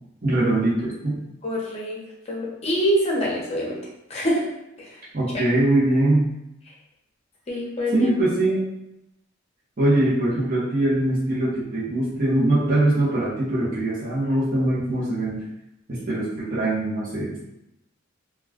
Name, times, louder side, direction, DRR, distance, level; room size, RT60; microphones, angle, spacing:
voice 1, 0.2-1.2 5.1-6.3 7.9-8.7 9.8-15.4 15.9-17.4, right 1 dB, 45° right, -8 dB, 0.8 m, -22 dB
voice 2, 1.4-2.0 2.3-3.8 4.1-4.4 4.8-4.9 7.5-8.1, equal, 30° left, -3 dB, 0.7 m, -25 dB
2.3 x 2.2 x 3.4 m, 0.85 s
head